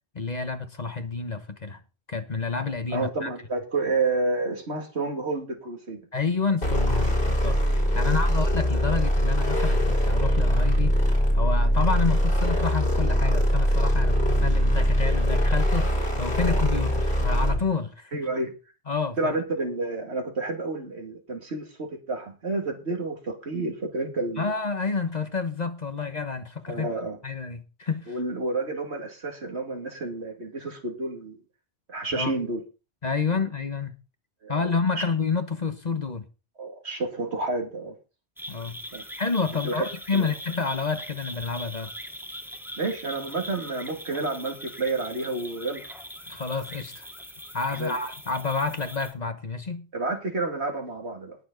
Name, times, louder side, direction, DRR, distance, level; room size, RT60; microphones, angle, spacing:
voice 1, 0.1-1.8 2.1-3.3 6.1-11.0 11.3-18.2 18.9-19.3 24.4-26.9 27.2-28.2 32.1-32.3 33.0-34.0 34.5-36.3 38.5-38.8 39.2-41.9 46.3-47.1 47.5-49.9, left 4 dB, 40° left, 1.2 m, -29 dB
voice 2, 2.9-6.0 8.0-8.4 18.1-18.5 19.2-24.5 26.7-27.2 28.1-31.4 31.9-32.6 33.3-33.4 34.4-35.0 36.6-38.0 38.9-39.0 39.6-39.9 40.1-40.3 42.8-45.8 47.7-48.0 49.9-51.4, right 3 dB, 85° right, 2.7 m, -30 dB
sound 1, 6.6-17.7, equal, 70° left, 4.2 m, -22 dB
sound 2, 38.4-49.1, equal, ahead, 1.7 m, -41 dB
19.5 x 7.1 x 3.9 m
omnidirectional pair, 1.1 m